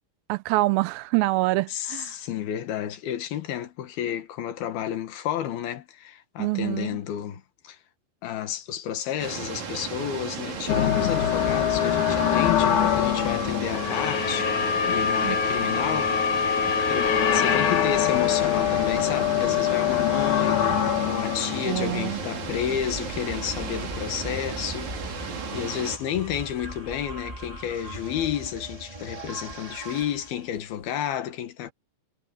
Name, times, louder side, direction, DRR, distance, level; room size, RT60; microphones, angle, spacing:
voice 1, 0.3-2.2 6.4-7.0 15.3-15.4 21.6-22.2, right 20 dB, 90° right, 2.5 m, -25 dB
voice 2, 1.7-7.8 8.2-16.5 16.9-20.7 21.0-25.3 25.5-31.7, left 10 dB, 85° left, 3.6 m, -31 dB
sound 1, 9.2-26.0, right 6 dB, 55° right, 4.3 m, -35 dB
sound 2, 10.7-22.8, left 9 dB, 60° left, 3.0 m, -24 dB
sound 3, 11.0-30.9, right 1 dB, 10° right, 2.5 m, -41 dB
omnidirectional pair, 4.2 m